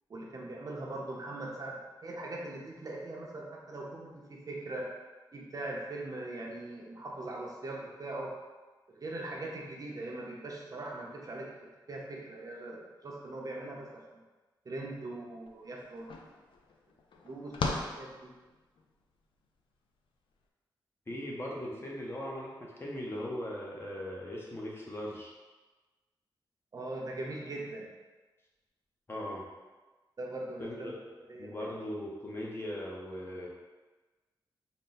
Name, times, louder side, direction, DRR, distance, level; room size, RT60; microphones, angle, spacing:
voice 1, 0.1-4.8 5.3-8.3 8.9-11.5 11.9-13.9 14.6-16.2 17.2-18.3 26.7-27.9 30.2-30.9 31.3-31.8, right 2 dB, 45° right, -2 dB, 0.7 m, -41 dB
sound 1, 15.5-15.6 15.8-18.9, left 3 dB, 80° left, 0.4 m, -38 dB
voice 2, 21.1-25.3 29.1-29.5 30.6-30.9 31.4-33.5, left 1 dB, 30° left, -3 dB, 0.7 m, -39 dB
4.0 x 2.1 x 3.8 m, 1.2 s
wide cardioid pair, 110°, 8 cm